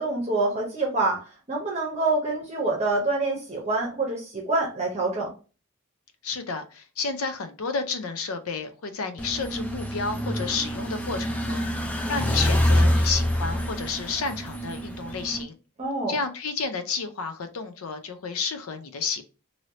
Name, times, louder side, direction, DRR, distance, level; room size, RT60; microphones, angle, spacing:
voice 1, 0.0-5.3 15.8-16.2, right 2 dB, 30° right, 0.8 m, -26 dB
voice 2, 6.2-11.6 12.1-15.6 16.1-19.2, left 4 dB, 85° left, 0.5 m, -31 dB
sound 1, 9.2-15.4, equal, 5° left, 0.3 m, -26 dB
3.1 x 2.7 x 2.7 m
head